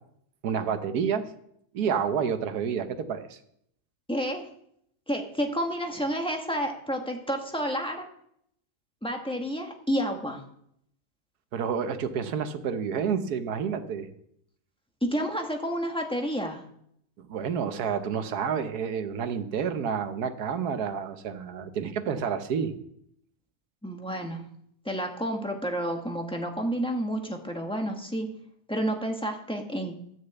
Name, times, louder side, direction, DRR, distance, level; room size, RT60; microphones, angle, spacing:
voice 1, 0.4-1.3 1.7-3.4 11.5-14.1 17.2-22.7, right 7 dB, 75° right, 9 dB, 1.5 m, -29 dB
voice 2, 4.1-4.5 5.1-8.1 9.0-10.4 15.0-16.6 23.8-24.4 24.8-28.3 28.7-29.9, equal, 5° left, 2 dB, 1.3 m, -30 dB
12.5 x 6.5 x 8.1 m, 0.72 s
omnidirectional pair, 1.7 m